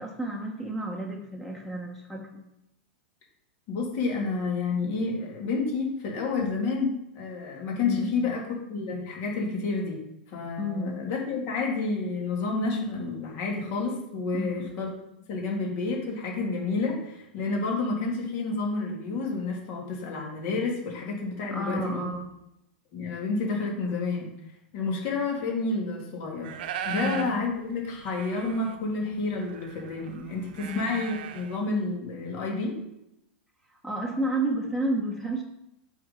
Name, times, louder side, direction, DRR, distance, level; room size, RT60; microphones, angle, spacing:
voice 1, 0.0-2.4 7.8-8.1 10.6-11.0 14.3-14.7 21.5-22.3 26.9-27.3 30.6-31.1 33.7-35.4, right 1 dB, 5° left, 1 dB, 1.2 m, -31 dB
voice 2, 3.7-8.4 8.7-10.0 10.3-14.9 15.3-22.0 22.9-24.3 24.7-26.6 26.8-32.8, left 3 dB, 50° left, -1 dB, 3.2 m, -30 dB
sound 1, 26.4-27.3 27.7-27.8 28.0-31.6, right 8 dB, 65° right, 0.8 m, -38 dB
7.6 x 4.9 x 5.7 m, 0.86 s
hypercardioid pair, 110°, 6 cm